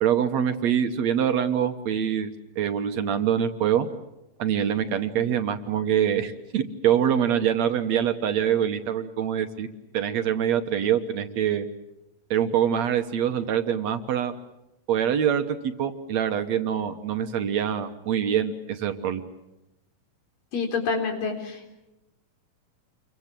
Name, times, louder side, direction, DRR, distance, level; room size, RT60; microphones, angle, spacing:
voice 1, 0.0-2.3 2.6-3.9 4.4-9.7 9.9-11.7 12.3-14.3 14.9-19.2, right 9 dB, 65° right, 8 dB, 2.1 m, -24 dB
voice 2, 20.5-21.8, left 5 dB, 85° left, 3 dB, 5.7 m, -28 dB
28.0 x 23.5 x 7.5 m, 0.90 s
omnidirectional pair, 3.8 m